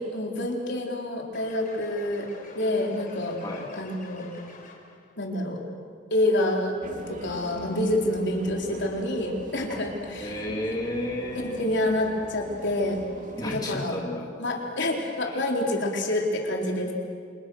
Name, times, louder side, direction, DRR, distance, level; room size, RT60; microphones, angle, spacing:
voice 1, 0.0-2.3 2.6-3.4 3.8-4.3 5.2-5.6 6.1-6.8 7.1-10.3 11.3-13.0 13.4-14.0 14.4-16.9, left 1 dB, 55° left, 0 dB, 4.0 m, -27 dB
sound 1, 1.3-5.1, left 3 dB, 40° left, 4.5 m, -48 dB
sound 2, 6.8-13.8, right 1 dB, 40° right, 2.5 m, -42 dB
voice 2, 10.2-11.6 13.4-14.2 15.2-15.5, left 1 dB, 20° left, -2 dB, 3.1 m, -32 dB
29.5 x 27.5 x 6.4 m, 2.1 s
head